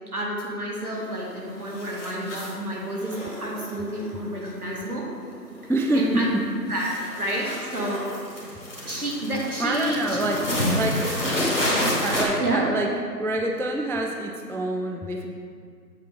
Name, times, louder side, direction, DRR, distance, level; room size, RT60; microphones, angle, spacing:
voice 1, 0.1-5.1 5.9-6.3 6.7-8.0 8.8-10.8 12.4-12.6, right 1 dB, 60° right, -3 dB, 1.7 m, -30 dB
sound 1, 0.9-1.3 1.6-2.6 3.0-5.2 5.5-5.9 6.2-12.3, left 1 dB, 45° left, 1.4 m, -29 dB
voice 2, 5.7-6.5 9.6-11.5 11.7-15.3, right 1 dB, 5° left, 2 dB, 0.3 m, -26 dB
7.5 x 3.9 x 4.8 m, 2.1 s
figure-of-eight pair, 175°, 50 cm